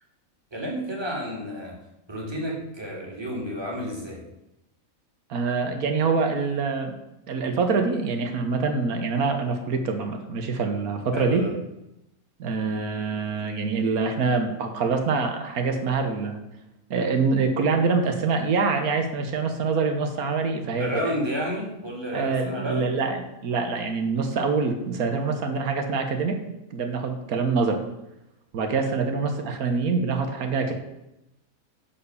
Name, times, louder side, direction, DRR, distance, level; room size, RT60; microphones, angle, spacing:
voice 1, 0.5-1.8 2.1-4.2 11.1-11.5 20.8-23.0 28.8-28.9, equal, 20° right, -2 dB, 2.3 m, -31 dB
voice 2, 5.3-6.9 7.3-11.4 12.4-16.4 16.9-21.1 22.1-26.3 26.7-27.8 28.5-30.7, right 4 dB, 90° right, 5 dB, 1.6 m, -25 dB
10.5 x 4.5 x 6.9 m, 0.90 s
omnidirectional pair, 1.5 m